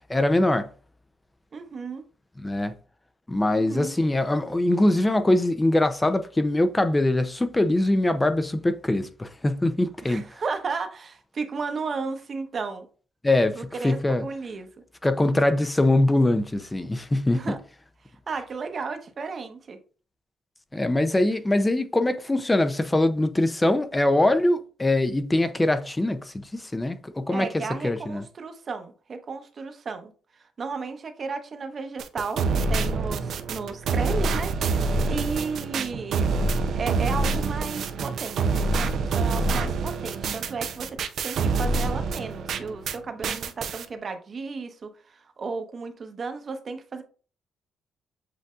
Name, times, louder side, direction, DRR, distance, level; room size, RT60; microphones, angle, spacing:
voice 1, 0.1-0.7 2.4-2.7 3.3-10.2 13.2-14.3 15.0-17.6 20.7-28.2, left 1 dB, 15° left, 0.5 m, -23 dB
voice 2, 1.5-2.0 3.5-3.9 10.0-12.9 13.5-14.7 17.3-17.6 18.3-19.8 27.3-36.3 36.7-47.0, right 4 dB, 45° right, 0.8 m, -34 dB
sound 1, 32.0-43.0 43.2-43.8, right 3 dB, 65° right, 0.5 m, -26 dB
7.6 x 2.6 x 2.4 m
cardioid pair, 90°, 0 cm